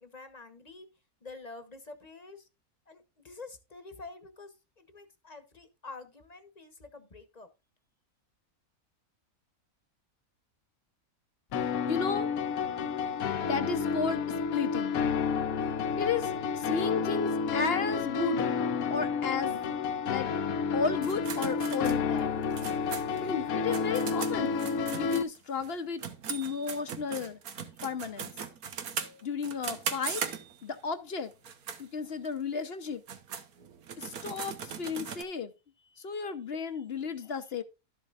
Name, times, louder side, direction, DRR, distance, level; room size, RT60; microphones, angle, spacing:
voice 1, 0.0-0.9 1.2-2.5 2.9-7.5, left 3 dB, 30° left, 1.2 m, -48 dB
sound 1, 11.5-25.2, left 5 dB, 75° left, 1.2 m, -30 dB
voice 2, 11.9-12.4 13.2-14.2 14.5-15.0 15.6-18.5 18.9-19.6 20.0-20.3 20.7-22.4 23.2-24.6 25.0-27.4 27.8-28.3 29.2-30.2 30.6-31.3 31.8-33.0 34.0-35.5 36.0-37.6, left 5 dB, 50° left, 0.9 m, -33 dB
sound 2, 21.0-25.7 26.0-30.8 31.3-31.8 32.2-32.3 32.9-35.2, right 7 dB, 90° right, 1.6 m, -39 dB
12.5 x 7.5 x 2.5 m
omnidirectional pair, 1.5 m